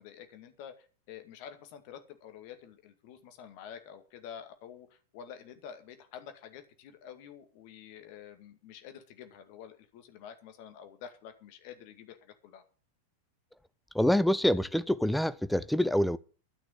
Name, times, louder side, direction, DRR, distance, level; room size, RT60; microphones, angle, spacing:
voice 1, 0.0-12.6, left 8 dB, 45° left, 2.1 m, -48 dB
voice 2, 13.9-16.2, left 1 dB, ahead, 0.6 m, -26 dB
13.0 x 6.2 x 9.2 m
figure-of-eight pair, 90°, 0 cm